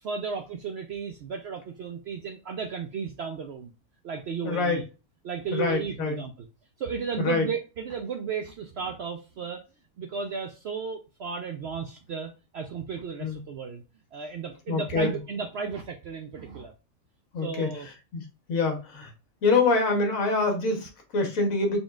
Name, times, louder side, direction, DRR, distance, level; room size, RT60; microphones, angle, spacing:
voice 1, 0.0-3.7 4.0-4.8 5.2-6.3 6.8-9.6 10.0-13.8 14.1-16.7 17.4-17.9, right 6 dB, 65° right, 4 dB, 0.6 m, -34 dB
voice 2, 4.4-4.8 5.5-6.2 7.2-7.4 13.2-13.4 14.7-15.1 17.3-17.7 18.1-19.1 19.4-21.8, left 3 dB, 65° left, 3 dB, 1.5 m, -25 dB
3.8 x 3.7 x 2.3 m, 0.30 s
omnidirectional pair, 1.6 m